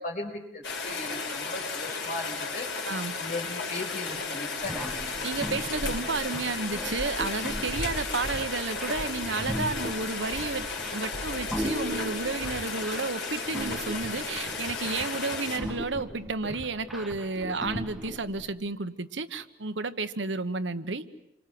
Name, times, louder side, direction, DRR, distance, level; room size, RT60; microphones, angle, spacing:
voice 1, 0.0-2.6 2.9-5.1, left 2 dB, 50° left, 0 dB, 5.8 m, -37 dB
Rain, 0.6-15.6, left 4 dB, 85° left, 5.3 m, -34 dB
voice 2, 2.8-3.2 5.2-21.0, right 3 dB, 85° right, 12 dB, 1.2 m, -32 dB
sound 1, 4.6-18.4, equal, ahead, 1.8 m, -39 dB
sound 2, 7.6-12.7, right 1 dB, 60° right, 1.3 m, -41 dB
29.0 x 25.5 x 7.8 m, 0.83 s
head